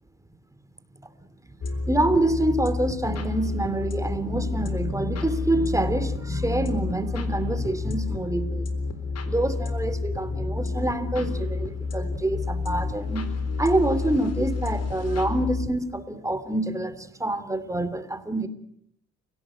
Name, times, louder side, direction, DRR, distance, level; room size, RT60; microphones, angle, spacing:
sound 1, 1.6-15.8, left 4 dB, 55° left, 4.0 m, -30 dB
voice 1, 1.7-18.5, right 1 dB, 10° right, 12 dB, 2.9 m, -27 dB
29.5 x 17.5 x 8.9 m, 0.71 s
cardioid pair, 90°, 30 cm